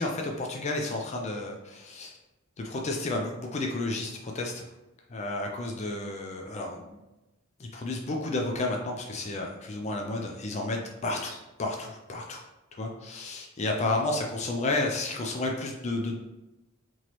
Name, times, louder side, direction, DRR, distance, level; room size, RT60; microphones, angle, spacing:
voice 1, 0.0-2.1 2.6-4.6 5.1-7.0 7.6-12.4 12.8-16.2, left 2 dB, 35° left, 1 dB, 0.4 m, -31 dB
4.3 x 3.0 x 2.9 m, 0.99 s
head